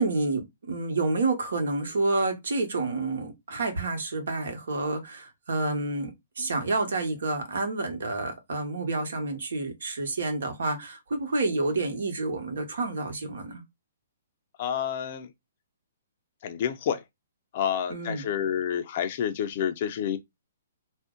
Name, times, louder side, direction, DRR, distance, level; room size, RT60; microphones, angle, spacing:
voice 1, 0.0-13.6 17.9-18.3, right 3 dB, 75° right, 1.0 m, -29 dB
voice 2, 14.6-15.3 16.4-17.0 17.5-20.2, left 9 dB, 45° left, 0.5 m, -29 dB
2.5 x 2.1 x 3.6 m
hypercardioid pair, 140°, 0 cm